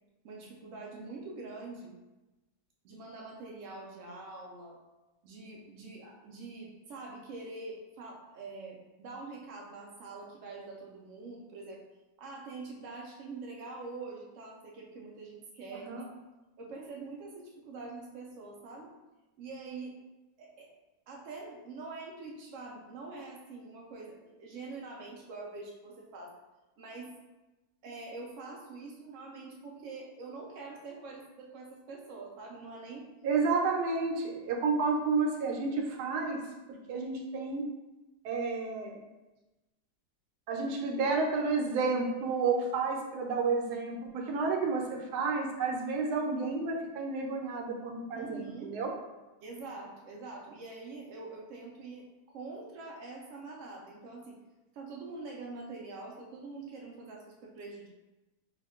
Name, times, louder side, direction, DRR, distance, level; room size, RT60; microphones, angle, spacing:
voice 1, 0.2-1.9 2.8-4.8 5.2-11.8 12.2-16.1 16.6-18.9 19.4-20.0 20.4-20.7 21.1-26.3 26.8-27.1 27.8-33.1 48.1-48.8 49.4-54.4 54.7-57.9, right 3 dB, 90° right, -2 dB, 0.6 m, -45 dB
voice 2, 33.2-36.4 36.9-37.6 38.2-39.0 40.5-48.9, right 4 dB, 70° right, 1 dB, 1.1 m, -31 dB
3.5 x 2.2 x 3.5 m, 1.1 s
omnidirectional pair, 1.9 m